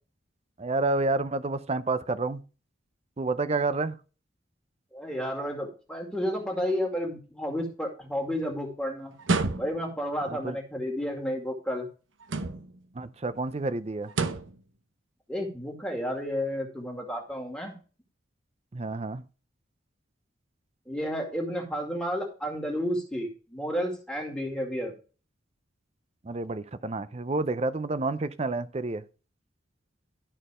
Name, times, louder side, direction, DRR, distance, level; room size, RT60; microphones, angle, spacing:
voice 1, 0.6-2.4 3.2-3.9 10.3-10.6 12.9-14.1 18.7-19.2 26.2-29.0, right 3 dB, 30° right, 0.5 m, -29 dB
voice 2, 4.9-9.1 9.6-11.9 15.3-17.8 20.9-24.9, equal, 5° left, 2.2 m, -31 dB
sound 1, 9.2-10.0 12.2-12.9 14.1-14.6, right 3 dB, 75° right, 0.8 m, -29 dB
12.5 x 4.5 x 4.9 m
head